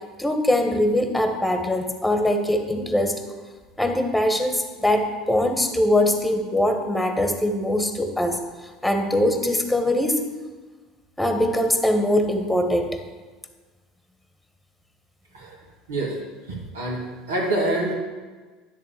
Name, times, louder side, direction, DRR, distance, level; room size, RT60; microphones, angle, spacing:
voice 1, 0.2-3.2 3.8-8.4 8.8-10.3 11.2-13.0, left 1 dB, 5° left, 5 dB, 1.3 m, -22 dB
voice 2, 16.5-17.9, right 1 dB, 85° right, -3 dB, 2.3 m, -26 dB
10.5 x 3.7 x 7.1 m, 1.4 s
hypercardioid pair, 75°, 0 cm